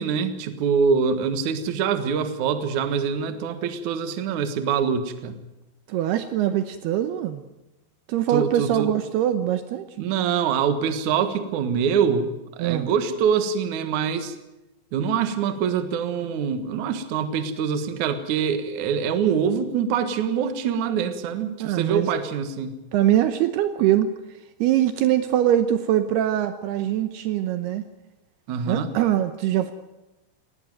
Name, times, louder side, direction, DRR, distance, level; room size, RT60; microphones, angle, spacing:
voice 1, 0.0-5.4 8.3-8.9 10.0-12.3 12.6-14.3 14.9-22.8 28.5-28.9, right 7 dB, 55° right, 10 dB, 2.3 m, -24 dB
voice 2, 5.9-7.4 8.1-9.9 12.6-12.9 21.6-22.1 22.9-24.1 24.6-27.8 28.7-29.7, right 12 dB, 75° right, 10 dB, 2.7 m, -22 dB
19.5 x 17.5 x 9.2 m, 0.96 s
omnidirectional pair, 5.0 m